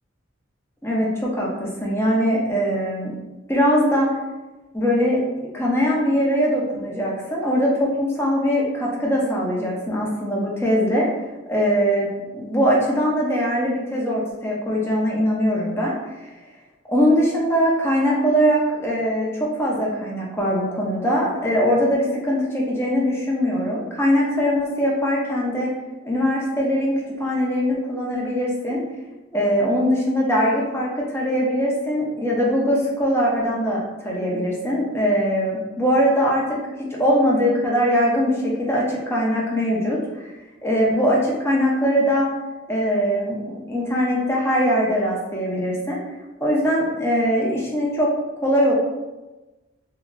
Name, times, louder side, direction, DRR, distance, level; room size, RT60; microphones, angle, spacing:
voice 1, 0.8-3.1 3.5-4.1 4.7-5.2 5.5-11.1 11.5-12.1 12.3-16.3 16.9-25.7 26.0-28.8 29.3-36.4 36.8-40.3 40.6-42.3 42.7-43.4 43.7-46.0 46.4-48.1 48.4-48.7, equal, 10° left, -4 dB, 0.5 m, -21 dB
2.9 x 2.5 x 2.5 m, 1.1 s
head